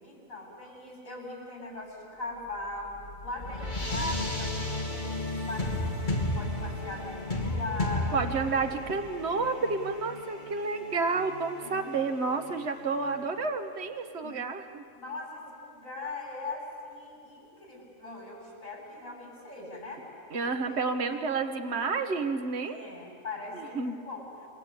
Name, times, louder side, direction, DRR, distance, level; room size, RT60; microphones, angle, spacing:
voice 1, 0.0-8.3 11.6-11.9 14.2-14.4 14.9-20.1 20.6-20.8 21.8-21.9 22.7-24.5, left 2 dB, 80° left, -1 dB, 7.5 m, -40 dB
sound 1, 2.5-13.3, left 1 dB, 35° left, 2.9 m, -34 dB
voice 2, 8.1-14.8 20.3-22.8 23.5-23.9, right 4 dB, 55° right, 5 dB, 1.7 m, -30 dB
29.0 x 24.0 x 8.6 m, 2.4 s
omnidirectional pair, 1.4 m